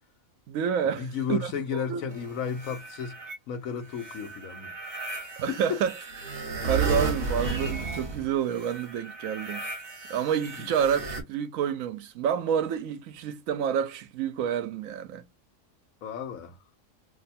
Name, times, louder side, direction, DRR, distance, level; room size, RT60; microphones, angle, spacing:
voice 1, 0.5-1.5 1.9-2.0 5.4-5.9 6.2-9.7 10.1-15.2, right 8 dB, 80° right, 1.0 m, -29 dB
voice 2, 1.0-5.6 10.6-10.7 16.0-16.6, left 7 dB, 80° left, 1.2 m, -34 dB
sound 1, 2.1-3.4 3.9-11.2, right 3 dB, 45° right, 1.2 m, -34 dB
3.0 x 2.2 x 4.0 m
omnidirectional pair, 1.4 m